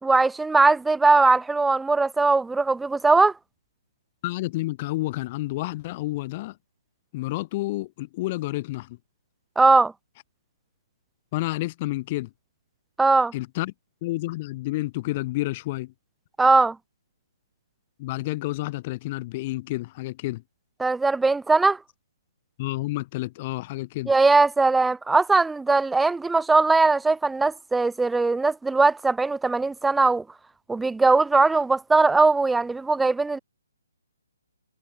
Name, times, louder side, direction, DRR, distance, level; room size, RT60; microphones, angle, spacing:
voice 1, 0.0-3.3 9.6-9.9 13.0-13.3 16.4-16.8 20.8-21.8 24.1-30.2 30.7-33.4, right 3 dB, 5° right, 0.4 m, -20 dB
voice 2, 4.2-6.6 7.1-9.0 11.3-12.3 13.3-13.7 14.0-15.9 18.0-20.4 22.6-24.1, left 19 dB, 30° left, 6.4 m, -30 dB
hypercardioid pair, 155°, 0 cm